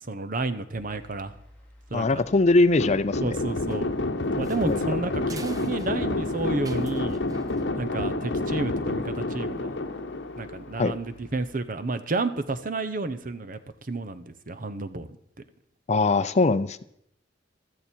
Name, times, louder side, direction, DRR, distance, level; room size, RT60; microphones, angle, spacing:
voice 1, 0.1-1.3 1.9-2.2 3.2-3.9 4.3-7.2 7.8-9.8 10.4-15.1, right 2 dB, 50° right, 11 dB, 0.9 m, -31 dB
sound 1, 0.7-11.6, equal, 10° left, 3.4 m, -52 dB
voice 2, 1.9-3.4 4.7-4.8 10.8-11.0 15.9-16.8, left 3 dB, 40° left, 14 dB, 0.6 m, -21 dB
sound 2, 2.8-11.1, left 2 dB, 75° left, 1.0 m, -29 dB
sound 3, 3.7-8.1, right 2 dB, 20° right, 0.9 m, -46 dB
15.5 x 13.0 x 4.5 m, 0.74 s
head